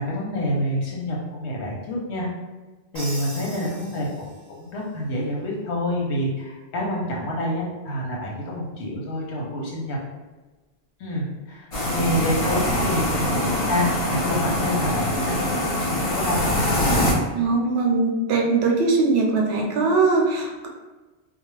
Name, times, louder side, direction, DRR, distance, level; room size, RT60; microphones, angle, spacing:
voice 1, 0.0-2.3 2.9-4.1 4.6-10.0 11.0-16.7, equal, 80° left, -3 dB, 1.0 m, -27 dB
Crash cymbal, 2.9-4.7, right 1 dB, 40° right, 0.7 m, -39 dB
sound 1, 11.7-17.1, left 1 dB, 40° left, 0.6 m, -24 dB
voice 2, 17.3-20.7, right 3 dB, 75° right, 0 dB, 0.8 m, -21 dB
2.3 x 2.0 x 3.1 m, 1.2 s
omnidirectional pair, 1.1 m